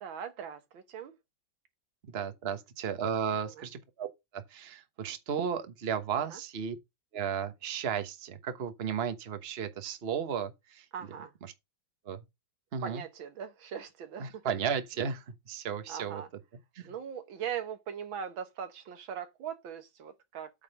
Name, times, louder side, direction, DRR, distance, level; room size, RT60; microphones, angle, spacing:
voice 1, 0.0-1.1 3.6-3.7 6.3-6.4 10.9-11.3 12.8-14.4 15.9-16.3 16.8-20.5, right 8 dB, 85° right, 2.0 m, -40 dB
voice 2, 2.0-6.8 7.1-10.8 11.4-11.5 12.0-12.2 12.7-13.0 14.2-16.2 16.7-16.9, right 7 dB, 40° right, 1.2 m, -34 dB
8.8 x 3.9 x 6.5 m
omnidirectional pair, 2.1 m